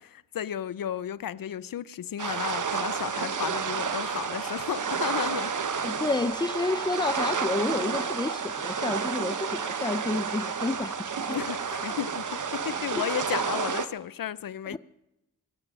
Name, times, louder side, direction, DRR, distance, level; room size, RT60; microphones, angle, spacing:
voice 1, 0.0-5.5 11.3-14.8, left 10 dB, 70° left, 0.5 m, -33 dB
sound 1, 2.2-13.9, right 6 dB, 60° right, 1.0 m, -30 dB
voice 2, 5.8-11.4 11.9-12.0 12.9-13.1 14.7-14.8, left 3 dB, 15° left, 0.4 m, -30 dB
22.0 x 9.8 x 6.2 m
wide cardioid pair, 80°, 35 cm